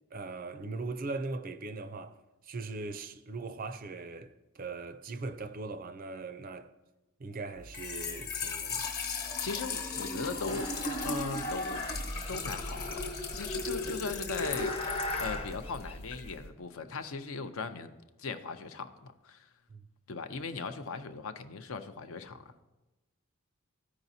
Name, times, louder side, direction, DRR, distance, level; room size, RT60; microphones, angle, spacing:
voice 1, 0.1-2.2 2.4-6.7 7.2-8.9 10.1-10.6 19.7-19.8, right 3 dB, 40° right, 0.4 m, -40 dB
Trickle dribble / Fill (with liquid), 7.6-16.4, left 3 dB, 45° left, 1.1 m, -37 dB
voice 2, 9.4-10.7 11.0-11.9 12.3-17.9 18.2-19.5 20.1-22.5, left 4 dB, 65° left, 0.6 m, -39 dB
sound 1, 10.5-16.5, left 1 dB, 25° left, 0.7 m, -39 dB
14.5 x 4.9 x 2.7 m
head